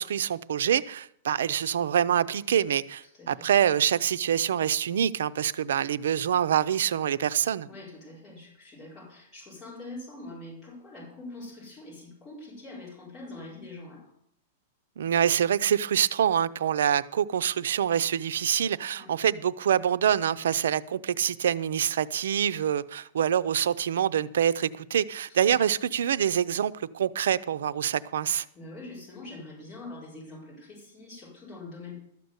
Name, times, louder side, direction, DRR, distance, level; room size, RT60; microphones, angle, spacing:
voice 1, 0.0-7.7 15.0-28.5, right 9 dB, 85° right, 0.5 m, -26 dB
voice 2, 3.0-3.5 7.7-14.1 18.9-19.1 25.5-25.6 28.5-31.9, left 2 dB, 20° left, 4.6 m, -44 dB
13.0 x 6.8 x 8.0 m
supercardioid pair, 165°, 0 cm